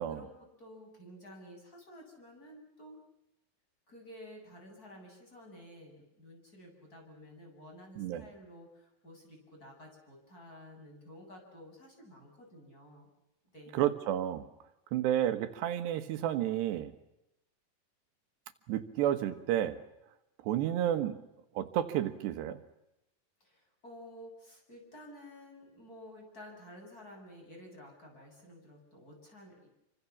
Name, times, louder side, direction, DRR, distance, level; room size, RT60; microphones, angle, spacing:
voice 1, 0.0-3.0 3.9-13.1 13.5-13.9 23.4-29.7, equal, 20° left, 1 dB, 8.4 m, -52 dB
voice 2, 13.7-14.5 14.9-16.9 18.7-19.8 20.4-21.2 21.6-22.6, right 11 dB, 85° right, 9 dB, 3.6 m, -31 dB
29.5 x 25.0 x 7.2 m, 0.90 s
omnidirectional pair, 4.8 m